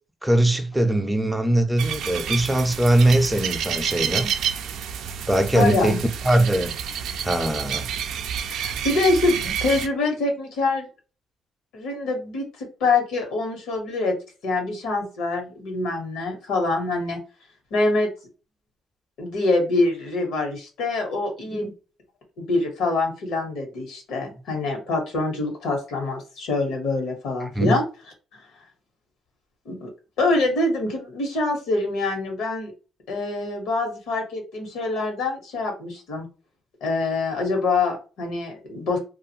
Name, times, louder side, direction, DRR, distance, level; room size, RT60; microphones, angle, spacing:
voice 1, 0.2-4.3 5.3-6.7 7.2-7.9 21.5-21.7 27.5-27.8, right 1 dB, 5° right, 0.6 m, -21 dB
sound 1, 1.8-9.9, right 8 dB, 80° right, 0.4 m, -29 dB
voice 2, 5.5-6.0 8.5-10.9 11.7-14.1 14.4-17.2 17.7-18.1 19.2-21.7 22.4-27.8 29.6-29.9 30.2-32.7 33.1-36.3 36.8-39.0, left 3 dB, 90° left, 1.2 m, -25 dB
2.5 x 2.4 x 2.8 m
cardioid pair, 90°, 0 cm